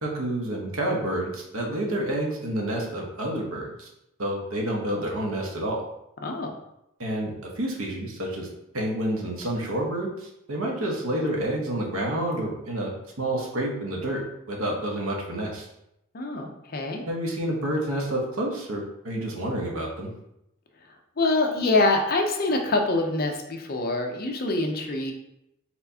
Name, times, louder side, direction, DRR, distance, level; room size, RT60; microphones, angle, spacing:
voice 1, 0.0-3.9 4.2-5.8 7.0-8.5 8.7-12.9 13.2-14.2 14.5-15.6 17.1-20.1, right 1 dB, 80° right, -1 dB, 1.1 m, -29 dB
voice 2, 16.1-17.1 21.2-25.1, left 2 dB, 45° left, 3 dB, 0.6 m, -25 dB
4.3 x 4.2 x 2.8 m, 0.82 s
head